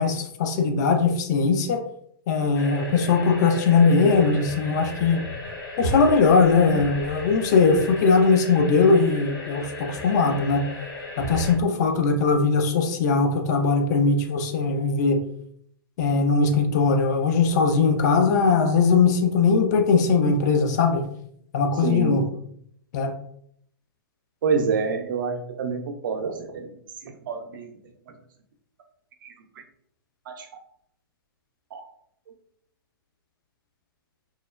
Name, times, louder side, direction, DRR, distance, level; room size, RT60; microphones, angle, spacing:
voice 1, 0.0-1.8 2.3-5.2 5.8-10.7 11.2-15.2 16.0-21.0 21.5-22.2 22.9-23.1, left 4 dB, 45° left, 6 dB, 0.4 m, -20 dB
sound 1, 2.5-11.5, left 1 dB, 70° left, 0.9 m, -35 dB
voice 2, 21.7-22.2 24.4-26.7 27.0-27.7 29.2-29.3 30.3-30.5 31.7-31.8, right 5 dB, 55° right, 5 dB, 0.5 m, -27 dB
3.1 x 2.0 x 2.3 m, 0.69 s
figure-of-eight pair, 115°, 13 cm